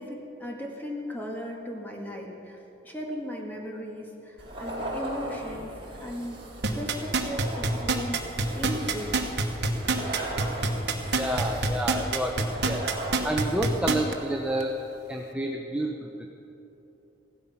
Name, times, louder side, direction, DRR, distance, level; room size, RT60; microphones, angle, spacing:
voice 1, 0.0-2.6 2.8-5.7 6.0-6.4 6.7-8.3 8.5-9.2, equal, 10° left, -1 dB, 1.7 m, -36 dB
sound 1, 4.4-13.7, right 1 dB, 25° right, 3.6 m, -38 dB
sound 2, 6.6-14.1 14.6-14.7, right 3 dB, 60° right, 1.2 m, -26 dB
voice 2, 11.1-12.9 13.2-16.3, right 1 dB, 5° right, 1 dB, 0.7 m, -30 dB
16.0 x 12.0 x 5.7 m, 3.0 s
head